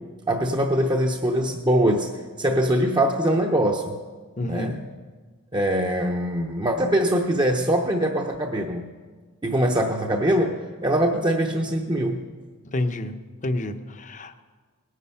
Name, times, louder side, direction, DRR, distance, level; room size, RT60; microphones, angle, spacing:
voice 1, 0.3-2.1 2.4-4.0 4.4-4.8 5.5-8.9 9.4-12.3, right 1 dB, 20° right, 2 dB, 0.8 m, -23 dB
voice 2, 4.4-4.8 12.6-13.2 13.4-14.4, left 1 dB, 35° left, 9 dB, 0.8 m, -28 dB
18.5 x 9.8 x 5.7 m, 1.4 s
head